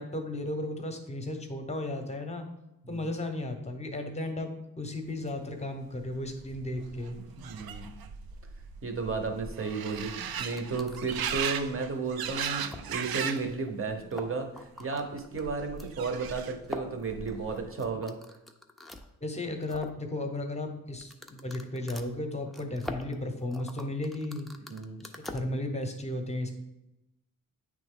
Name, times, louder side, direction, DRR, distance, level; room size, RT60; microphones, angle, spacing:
voice 1, 0.0-2.5 2.9-7.2 19.2-24.5 25.0-26.5, left 1 dB, 20° left, 5 dB, 0.7 m, -35 dB
sound 1, 6.0-6.1 6.2-13.5 13.8-14.4 15.4-16.7 17.0-17.6, right 8 dB, 85° right, 0.5 m, -37 dB
voice 2, 7.4-7.9 8.8-18.2 24.7-25.0, right 4 dB, 35° right, 4 dB, 0.9 m, -33 dB
sound 2, 10.4-11.6 12.1-12.2 12.6-13.1 13.4-13.5 13.7-13.8 14.0-15.9 16.6-19.1 19.4-20.0 20.9-25.4, left 1 dB, ahead, 0.3 m, -44 dB
8.7 x 3.2 x 3.7 m, 0.90 s
wide cardioid pair, 145°, 35 cm